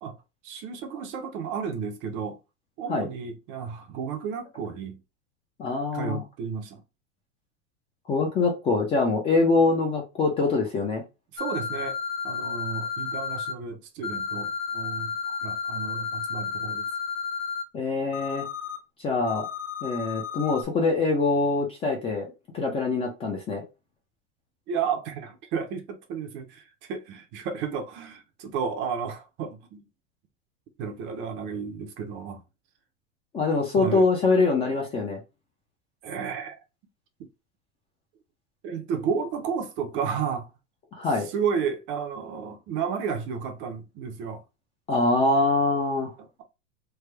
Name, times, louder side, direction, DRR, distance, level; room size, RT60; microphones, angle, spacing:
voice 1, 0.4-2.4 2.8-5.0 5.9-6.8 11.3-12.0 12.2-16.8 24.7-29.9 30.8-32.4 33.8-34.1 36.0-36.6 38.6-40.5 41.2-44.4 46.2-46.4, right 6 dB, 35° right, 0.6 m, -32 dB
voice 2, 5.6-6.2 8.1-11.0 17.7-18.5 19.0-19.5 19.8-22.3 22.5-23.6 33.3-35.2 40.9-41.3 44.9-46.1, left 3 dB, 15° left, 0.4 m, -24 dB
sound 1, 11.4-13.5 14.0-17.6 18.1-18.8 19.3-20.6, left 6 dB, 40° left, 0.7 m, -32 dB
3.3 x 2.1 x 3.2 m
supercardioid pair, 155°, 35 cm